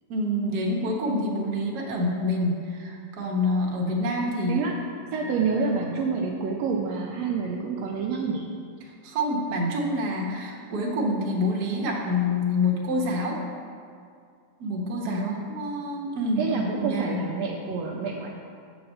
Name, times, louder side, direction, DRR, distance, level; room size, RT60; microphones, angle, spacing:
voice 1, 0.1-4.6 5.2-5.3 9.0-13.4 14.6-17.2, left 1 dB, 50° right, -2 dB, 1.3 m, -27 dB
voice 2, 5.1-8.5 15.0-15.4 16.4-18.3, right 5 dB, 75° right, -1 dB, 1.7 m, -28 dB
7.9 x 6.0 x 6.3 m, 2.2 s
omnidirectional pair, 3.4 m